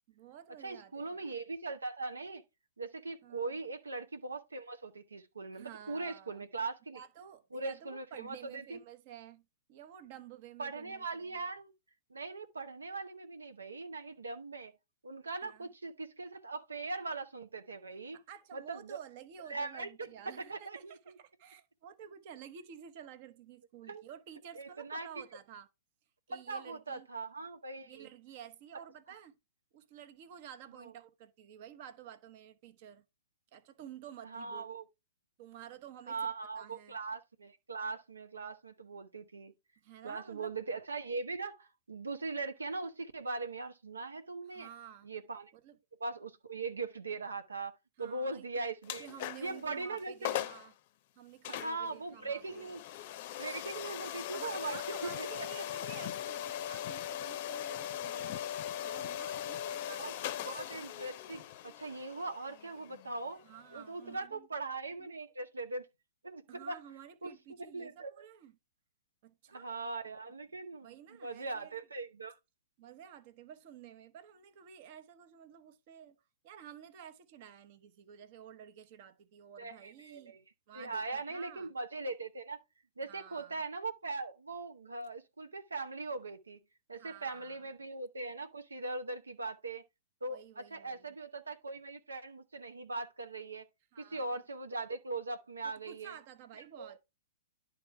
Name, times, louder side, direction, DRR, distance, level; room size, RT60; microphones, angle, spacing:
voice 1, 0.1-1.3 3.2-3.5 5.5-6.4 6.9-11.4 15.4-15.7 18.1-25.7 26.3-27.1 27.8-29.3 29.7-33.0 33.5-34.8 35.4-36.3 36.6-37.0 39.8-40.5 44.5-45.1 45.5-45.8 48.0-48.5 49.0-50.7 51.1-52.8 54.3-58.5 58.8-60.5 63.4-64.5 65.0-65.1 66.5-68.5 69.2-69.7 70.8-71.7 72.8-76.2 76.4-80.4 80.7-81.7 83.0-83.6 87.0-87.6 90.2-91.1 93.9-94.4 95.6-97.0, right 9 dB, 45° right, 1.0 m, -52 dB
voice 2, 0.6-2.4 2.8-7.0 7.5-8.8 10.6-11.7 12.1-14.7 15.0-18.2 18.5-19.0 19.5-21.2 23.9-24.0 24.5-25.1 26.3-28.1 30.8-30.9 34.2-34.8 36.1-39.5 40.0-44.7 45.0-45.5 46.0-49.1 49.4-50.5 51.5-52.8 53.4-55.5 59.9-60.1 60.4-63.4 63.7-65.9 66.2-66.8 67.2-67.3 67.7-68.2 69.5-70.9 71.2-72.4 79.6-80.4 80.7-82.6 83.0-86.6 86.9-89.9 90.2-93.7 94.0-96.2 96.8-96.9, right 3 dB, 85° right, 0.7 m, -40 dB
sound 1, 48.8-49.6 50.0-50.1 50.2-50.7 51.4-64.2, left 11 dB, 45° left, 0.6 m, -40 dB
10.5 x 3.6 x 4.4 m
hypercardioid pair, 115°, 0 cm